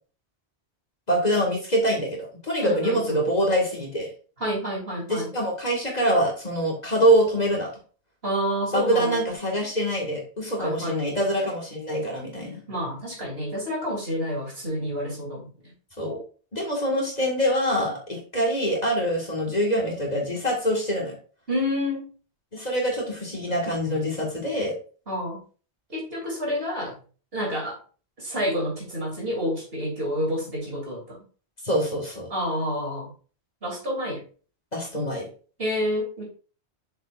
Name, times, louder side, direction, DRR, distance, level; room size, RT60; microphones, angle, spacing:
voice 1, 1.1-4.1 5.1-7.7 8.7-12.6 16.0-16.2 16.5-21.2 22.5-24.8 31.6-32.3 34.7-35.3, equal, 40° left, -1 dB, 2.0 m, -24 dB
voice 2, 2.6-3.2 4.4-5.3 8.2-9.2 10.6-11.0 12.7-15.7 21.5-22.1 25.1-25.4 25.9-26.9 27.3-27.8 28.2-31.2 32.3-33.1 33.6-34.2 35.6-36.2, equal, 60° right, -3 dB, 3.1 m, -29 dB
6.7 x 6.5 x 2.5 m, 0.38 s
omnidirectional pair, 1.1 m